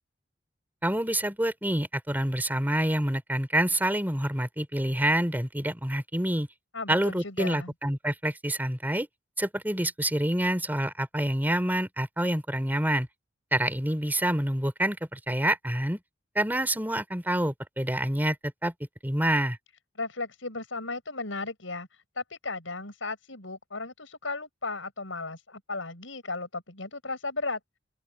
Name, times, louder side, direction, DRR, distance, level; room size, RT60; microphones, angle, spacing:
voice 1, 0.8-6.5 6.9-9.1 9.4-13.1 13.5-16.0 16.3-18.7 19.0-19.6, right 1 dB, 10° right, 4.3 m, -27 dB
voice 2, 6.7-7.7 20.0-21.9 22.2-27.6, left 3 dB, 80° left, 7.0 m, -35 dB
open air
head